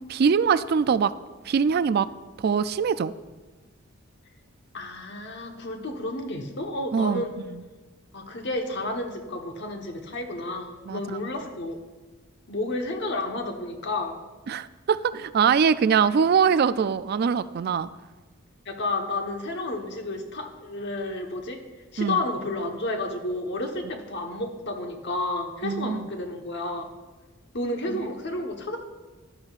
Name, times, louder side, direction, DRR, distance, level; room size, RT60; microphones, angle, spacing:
voice 1, 0.1-1.1 1.5-2.1 2.4-3.1 6.9-7.2 7.5-7.6 10.9-11.0 14.5-17.9 22.0-22.2 25.6-26.1, right 6 dB, 50° right, 14 dB, 0.3 m, -22 dB
voice 2, 4.7-7.3 8.1-11.8 12.5-14.2 18.6-21.6 21.9-26.9 27.5-28.8, left 2 dB, 55° left, 4 dB, 1.1 m, -31 dB
14.0 x 10.5 x 2.4 m, 1.3 s
head